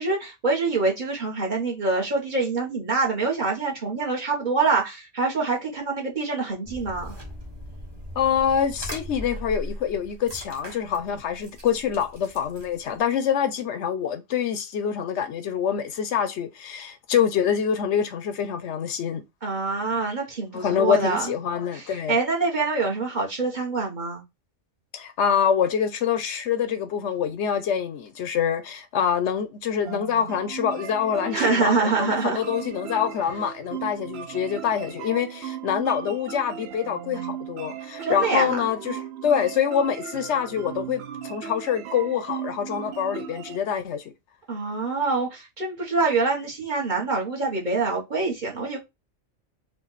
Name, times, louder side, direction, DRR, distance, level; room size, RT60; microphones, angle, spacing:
voice 1, 0.0-7.2 19.4-21.3 21.7-24.2 31.3-32.4 38.0-38.7 44.5-48.8, right 4 dB, 40° right, 1.4 m, -25 dB
sound 1, 6.6-13.0, equal, 20° right, 1.2 m, -39 dB
voice 2, 8.2-19.2 20.5-22.2 24.9-44.0, left 8 dB, 70° left, 0.9 m, -25 dB
sound 2, 29.8-43.6, right 9 dB, 65° right, 0.8 m, -36 dB
4.5 x 2.4 x 4.0 m
omnidirectional pair, 1.3 m